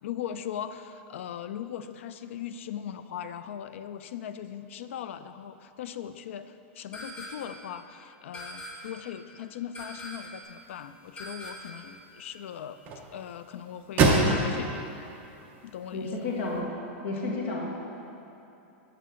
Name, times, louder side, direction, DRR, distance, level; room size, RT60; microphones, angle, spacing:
voice 1, 0.0-12.8 13.1-14.9 15.6-16.4, left 9 dB, 80° left, 12 dB, 0.4 m, -39 dB
sound 1, 6.9-7.7 8.3-9.1 9.7-10.5 11.2-11.9, equal, 15° left, 0.6 m, -42 dB
sound 2, 10.4-16.6, right 2 dB, 25° right, 0.7 m, -30 dB
voice 2, 15.9-16.6 17.0-17.7, left 3 dB, 65° left, -3 dB, 1.7 m, -31 dB
7.3 x 6.8 x 3.7 m, 2.9 s
supercardioid pair, 165°, 7 cm